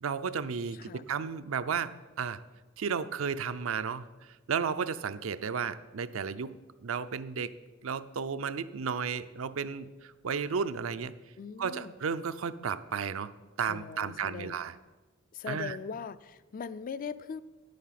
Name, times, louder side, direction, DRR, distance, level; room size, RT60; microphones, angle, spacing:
voice 1, 0.0-2.4 2.8-6.5 6.8-7.5 7.8-11.1 11.6-13.3 13.6-14.7 15.5-15.8, right 6 dB, 75° right, 12 dB, 0.5 m, -33 dB
voice 2, 0.7-1.1 11.4-11.9 13.7-14.6 15.3-17.4, left 6 dB, 40° left, 14 dB, 0.4 m, -40 dB
10.0 x 8.5 x 5.9 m, 1.2 s
head